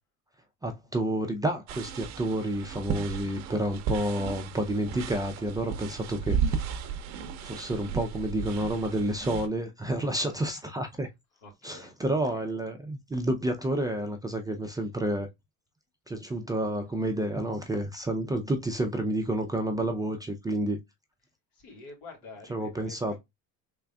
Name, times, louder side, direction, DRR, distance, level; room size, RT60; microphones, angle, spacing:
voice 1, 0.6-6.8 7.4-11.1 11.6-15.3 16.1-20.8 22.5-23.2, right 1 dB, 10° right, 0.4 m, -30 dB
sound 1, 1.7-9.5, right 7 dB, 45° right, 0.7 m, -34 dB
voice 2, 10.0-10.4 11.3-12.5 21.5-23.2, left 3 dB, 70° left, 2.3 m, -49 dB
3.7 x 3.5 x 2.2 m
cardioid pair, 120°, 36 cm